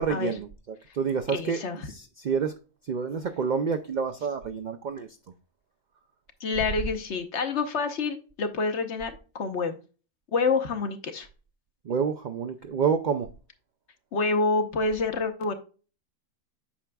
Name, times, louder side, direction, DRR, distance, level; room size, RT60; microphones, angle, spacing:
voice 1, 0.0-2.5 2.9-5.1 11.9-13.3, right 6 dB, 55° right, 0.5 m, -28 dB
voice 2, 1.3-1.9 6.4-9.8 10.3-11.3 14.1-15.5, left 4 dB, 60° left, 1.1 m, -27 dB
8.5 x 5.8 x 2.3 m
omnidirectional pair, 1.4 m